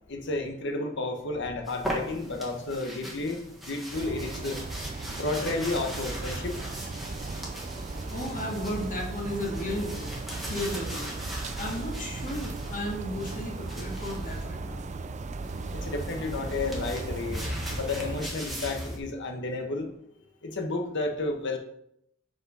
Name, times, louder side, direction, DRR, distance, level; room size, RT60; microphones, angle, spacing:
voice 1, 0.1-3.4 3.6-4.6 5.2-6.6 15.7-17.5 17.8-19.9 20.4-21.6, left 2 dB, 60° left, 5 dB, 1.1 m, -31 dB
sound 1, 1.6-14.4 15.4-19.0, equal, ahead, 1.5 m, -39 dB
sound 2, 3.9-18.3, right 3 dB, 35° right, 0.4 m, -36 dB
voice 2, 8.0-10.2 10.5-11.1 11.6-14.8, left 1 dB, 40° left, -1 dB, 1.7 m, -34 dB
5.7 x 5.3 x 5.5 m, 0.75 s
head